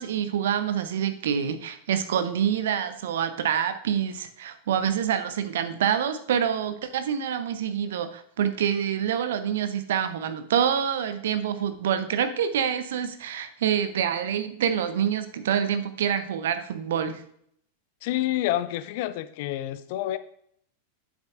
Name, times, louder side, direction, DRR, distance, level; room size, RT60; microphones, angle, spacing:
voice 1, 0.0-17.2, right 8 dB, 60° right, 11 dB, 0.7 m, -26 dB
voice 2, 18.0-20.2, left 14 dB, 50° left, 13 dB, 0.5 m, -28 dB
8.9 x 7.3 x 2.5 m, 0.68 s
figure-of-eight pair, 90°, 0 cm